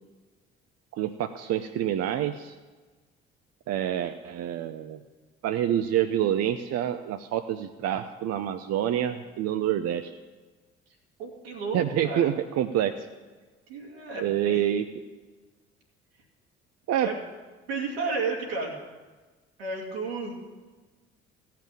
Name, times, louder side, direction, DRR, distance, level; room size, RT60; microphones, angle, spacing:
voice 1, 1.0-2.6 3.7-5.0 5.4-10.1 11.7-13.1 14.2-14.8 16.9-17.1, right 11 dB, 60° right, 8 dB, 0.7 m, -27 dB
voice 2, 11.2-12.3 13.7-14.6 17.0-17.2 17.7-18.7 19.6-20.4, right 4 dB, 90° right, -1 dB, 2.3 m, -32 dB
14.5 x 5.9 x 9.0 m, 1.3 s
hypercardioid pair, 55°, 29 cm